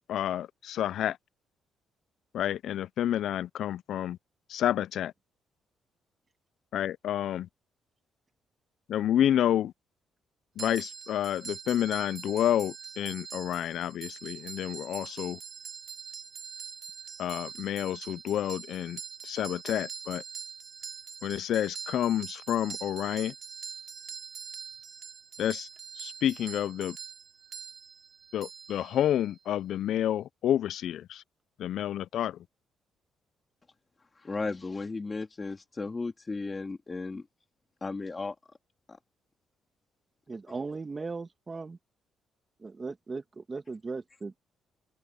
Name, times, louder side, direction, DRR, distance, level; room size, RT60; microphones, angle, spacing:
voice 1, 0.1-1.2 2.3-4.2 4.5-5.1 6.7-7.5 8.9-9.7 10.6-15.4 17.2-20.2 21.2-23.3 25.4-25.7 26.0-27.0 28.3-31.2 31.6-32.4, left 11 dB, 75° left, 0.3 m, -29 dB
sound 1, 10.6-29.4, right 7 dB, 55° right, 2.5 m, -44 dB
voice 2, 34.2-37.2 37.8-38.4 38.9-39.0, left 3 dB, 25° left, 2.2 m, -35 dB
voice 3, 40.3-41.8 42.6-44.5, right 4 dB, 30° right, 1.9 m, -38 dB
cardioid pair, 90°, 0 cm